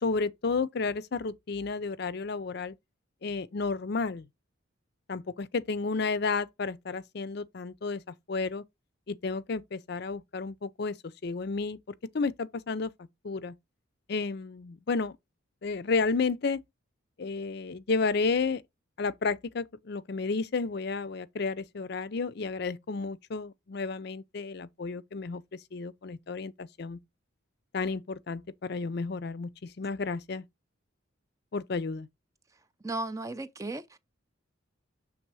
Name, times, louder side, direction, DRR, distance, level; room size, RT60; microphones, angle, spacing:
voice 1, 0.0-2.7 3.2-4.3 5.1-8.0 8.3-8.6 9.1-11.0 11.2-11.8 12.1-12.9 13.2-13.6 14.1-15.2 15.6-16.6 17.2-18.6 19.0-27.0 27.7-30.5 31.5-32.1, left 4 dB, 50° left, 0.5 m, -32 dB
voice 2, 32.8-34.0, right 2 dB, 15° right, 0.4 m, -35 dB
6.7 x 3.4 x 4.6 m
head